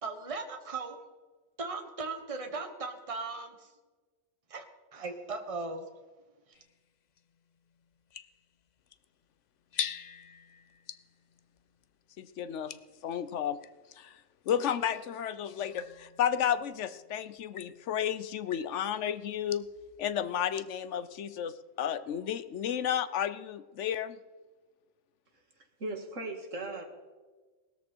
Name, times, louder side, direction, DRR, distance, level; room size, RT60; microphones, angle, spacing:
voice 1, 0.0-1.0 1.6-3.7 4.5-4.6 4.9-5.9, right 3 dB, 30° right, 6 dB, 1.3 m, -38 dB
sound 1, 6.5-13.8 14.4-20.9, left 8 dB, 55° left, 0.5 m, -46 dB
voice 2, 12.2-12.7 13.0-13.6 14.0-14.1 14.5-19.7 20.0-24.2, left 9 dB, 70° left, 14 dB, 1.0 m, -32 dB
voice 3, 25.6-26.8, right 2 dB, 80° right, 2 dB, 2.5 m, -38 dB
19.5 x 13.5 x 4.5 m, 1.3 s
omnidirectional pair, 1.3 m